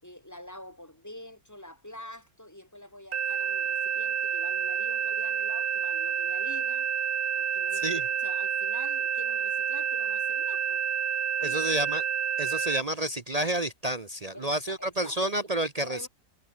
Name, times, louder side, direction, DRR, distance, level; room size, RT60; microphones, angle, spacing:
voice 1, 0.0-6.9 7.4-10.8 11.4-11.8 14.3-15.2 15.8-16.1, left 1 dB, 10° left, 4.5 m, -46 dB
sound 1, 3.1-12.8, right 7 dB, 75° right, 1.9 m, -29 dB
voice 2, 11.4-12.0 12.4-16.1, right 1 dB, 35° right, 0.7 m, -30 dB
omnidirectional pair, 1.6 m